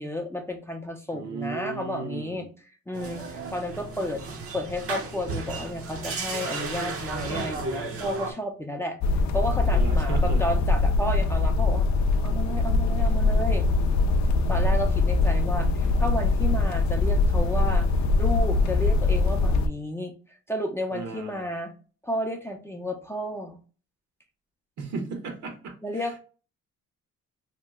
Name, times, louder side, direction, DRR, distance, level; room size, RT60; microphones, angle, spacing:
voice 1, 0.0-2.5 2.9-4.2 4.5-9.0 9.3-11.9 12.2-13.7 14.5-17.9 18.2-20.1 20.5-21.7 22.0-23.6 25.8-26.2, left 1 dB, 10° left, 3 dB, 0.5 m, -32 dB
voice 2, 1.1-2.5 9.7-10.4 20.9-21.4 24.8-26.2, right 4 dB, 70° right, 4 dB, 1.1 m, -36 dB
sound 1, 2.9-8.3, right 3 dB, 50° right, 0.8 m, -34 dB
sound 2, 9.0-19.7, left 3 dB, 65° left, 0.5 m, -22 dB
2.9 x 2.1 x 3.4 m, 0.37 s
cardioid pair, 90°, 30 cm